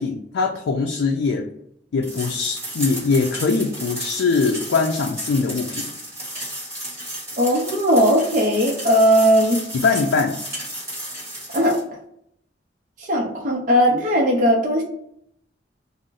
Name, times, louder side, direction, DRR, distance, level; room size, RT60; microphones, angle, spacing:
voice 1, 0.0-1.5 1.9-5.9 9.7-10.4, left 4 dB, 85° left, 2 dB, 0.4 m, -22 dB
sound 1, 2.0-11.8, right 1 dB, 15° right, 1.2 m, -33 dB
voice 2, 7.4-9.6 11.5-11.7 13.0-14.8, equal, 45° right, -2 dB, 0.6 m, -18 dB
2.5 x 2.0 x 3.7 m, 0.72 s
head